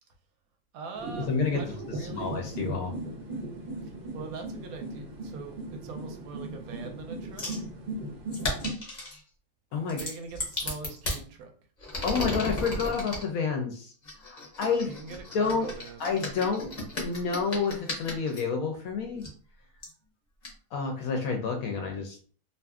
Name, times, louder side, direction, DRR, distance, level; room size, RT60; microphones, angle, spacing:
voice 1, 0.7-1.3 1.6-2.4 4.1-7.5 10.0-11.5 14.9-16.1, right 4 dB, 70° right, 4 dB, 0.9 m, -42 dB
sound 1, 0.9-8.7, right 2 dB, 55° right, 0.6 m, -38 dB
voice 2, 1.3-2.9 9.7-10.0 12.0-13.9 14.2-15.0 15.3-15.7 16.0-19.2 20.7-22.2, left 5 dB, 70° left, 3 dB, 0.9 m, -29 dB
sound 2, 7.4-7.6 8.3-9.2 9.9-11.2 11.8-13.2 14.0-18.4 19.2-19.3 19.8-19.9 20.4-20.5, left 1 dB, 40° left, 0.6 m, -35 dB
2.7 x 2.5 x 2.3 m, 0.43 s
omnidirectional pair, 1.8 m